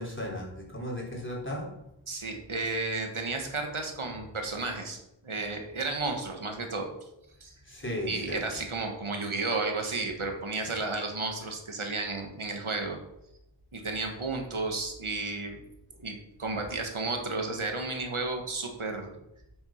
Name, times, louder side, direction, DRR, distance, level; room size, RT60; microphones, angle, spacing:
voice 1, 0.0-1.7 7.7-8.4, left 1 dB, 25° left, -3 dB, 3.7 m, -35 dB
voice 2, 2.1-5.0 5.2-6.9 7.4-7.5 8.1-13.0 13.7-15.6 16.0-19.1, right 3 dB, 85° right, 3 dB, 1.7 m, -33 dB
8.0 x 7.2 x 5.9 m, 0.85 s
wide cardioid pair, 40°, 48 cm